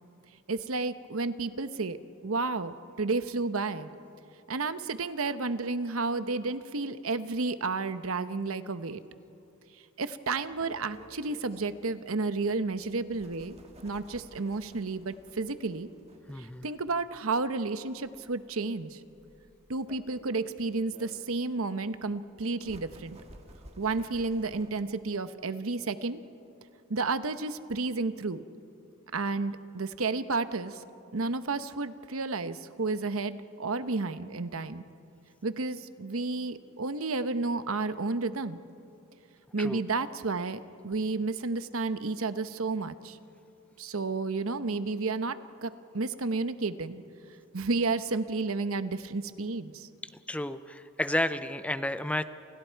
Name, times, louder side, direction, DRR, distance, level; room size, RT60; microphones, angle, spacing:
voice 1, 0.5-2.0 2.2-3.9 4.5-9.0 10.0-13.5 13.8-15.9 16.4-19.0 19.7-23.2 23.8-26.2 26.9-28.4 29.1-30.8 31.1-34.8 35.4-38.6 39.5-43.2 43.8-47.0 47.5-49.9, right 3 dB, 70° right, 11 dB, 0.9 m, -31 dB
sound 1, 10.5-24.9, right 1 dB, 30° right, 1.9 m, -55 dB
voice 2, 16.3-16.7 39.6-39.8 50.3-52.2, left 1 dB, 5° left, 12 dB, 0.5 m, -31 dB
29.5 x 28.0 x 4.6 m, 2.6 s
head